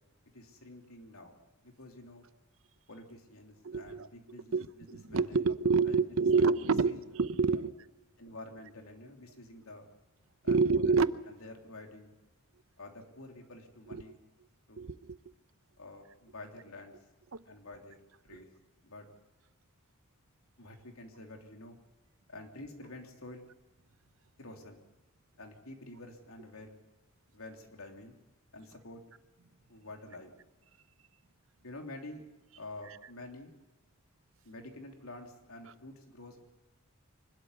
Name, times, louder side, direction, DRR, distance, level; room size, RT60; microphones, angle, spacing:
voice 1, 0.3-1.4 1.6-2.3 2.9-4.5 5.1-5.4 5.8-6.0 6.3-6.6 6.8-7.0 7.5-7.6 8.2-9.8 10.4-10.6 10.8-11.0 11.3-12.1 12.8-14.2 14.7-14.9 15.8-17.0 17.4-18.0 18.2-18.5 18.8-19.1 20.6-21.8 22.3-23.4 24.4-24.8 25.4-26.8 27.3-28.2 28.5-29.0 29.7-30.3 31.6-32.2 32.6-33.5 34.4-36.4, left 2 dB, 85° left, 3 dB, 3.3 m, -48 dB
voice 2, 3.6-7.9 10.5-11.1 13.9-14.0 14.8-15.2 17.3-17.4 32.9-33.0, right 4 dB, 70° right, 14 dB, 0.8 m, -28 dB
24.5 x 12.5 x 9.7 m, 1.1 s
head